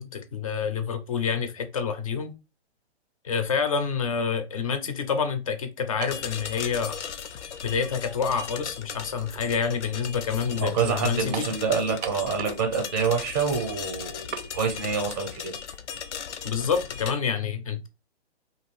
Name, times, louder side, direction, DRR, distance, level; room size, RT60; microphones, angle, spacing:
voice 1, 0.0-2.3 3.2-7.0 7.6-11.5 16.4-17.9, left 6 dB, 35° left, 0.4 m, -28 dB
sound 1, 6.0-6.3 7.2-7.3 11.3-11.6 12.0-12.7 12.9-13.0 14.3-14.5, right 7 dB, 85° right, 0.6 m, -36 dB
sound 2, 6.1-17.1, left 7 dB, 90° left, 0.5 m, -37 dB
voice 2, 10.5-15.5, right 5 dB, 20° right, 0.5 m, -27 dB
2.6 x 2.3 x 3.0 m
hypercardioid pair, 145°, 34 cm